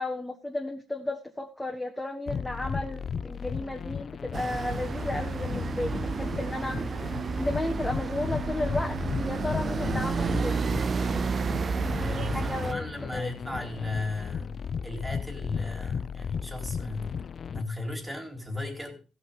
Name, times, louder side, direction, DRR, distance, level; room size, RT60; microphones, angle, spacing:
voice 1, 0.0-7.1 7.4-10.6 11.7-13.3, left 2 dB, 10° left, 1.5 m, -34 dB
sound 1, 2.3-17.6, left 7 dB, 50° left, 0.5 m, -35 dB
sound 2, 4.3-12.7, right 5 dB, 45° right, 0.5 m, -31 dB
voice 2, 9.8-10.1 12.0-17.2 17.5-19.0, left 2 dB, 10° right, 3.3 m, -36 dB
15.5 x 5.7 x 5.5 m
cardioid pair, 90°, 0 cm